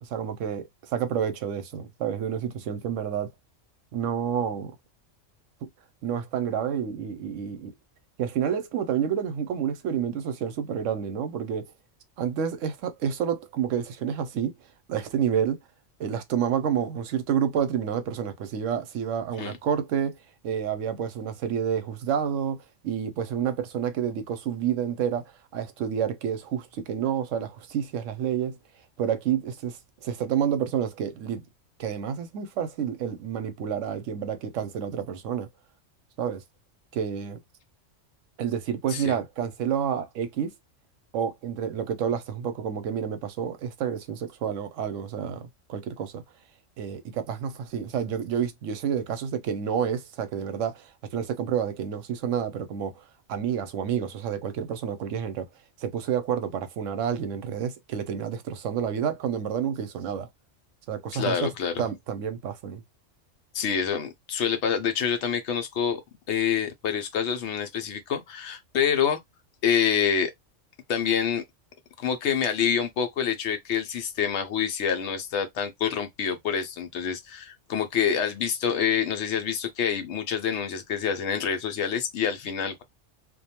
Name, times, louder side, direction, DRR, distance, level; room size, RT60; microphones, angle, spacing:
voice 1, 0.0-3.3 3.9-4.7 5.6-5.7 6.0-7.7 8.2-11.6 12.2-14.5 14.9-15.6 16.0-20.2 20.4-28.6 29.0-31.4 31.8-35.5 36.2-36.4 36.9-37.4 38.4-40.5 41.1-46.2 46.8-52.9 53.3-55.5 55.8-60.3 60.9-61.5 61.8-62.8, right 8 dB, 85° right, 1.0 m, -29 dB
voice 2, 61.1-61.7 63.5-66.0 66.3-69.2 69.6-70.3 70.9-71.4 72.0-82.8, left 7 dB, 70° left, 0.9 m, -27 dB
2.5 x 2.2 x 2.8 m
omnidirectional pair, 1.3 m